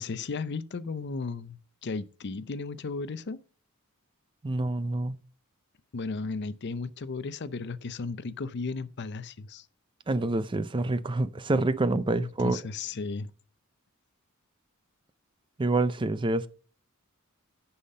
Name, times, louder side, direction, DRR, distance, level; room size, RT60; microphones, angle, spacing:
voice 1, 0.0-3.4 5.9-9.7 12.2-13.3, left 4 dB, 55° left, 0.5 m, -35 dB
voice 2, 4.4-5.2 10.1-12.6 15.6-16.5, right 2 dB, 20° right, 0.4 m, -27 dB
10.0 x 5.7 x 5.4 m
head